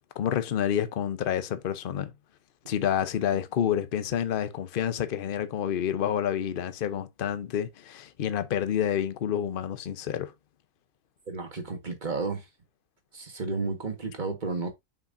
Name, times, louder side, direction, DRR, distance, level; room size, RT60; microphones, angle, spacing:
voice 1, 0.2-2.1 2.7-10.3, left 9 dB, 50° left, 0.8 m, -28 dB
voice 2, 11.3-12.5 13.1-14.7, right 3 dB, 35° right, 1.6 m, -32 dB
7.2 x 5.7 x 2.6 m
omnidirectional pair, 1.5 m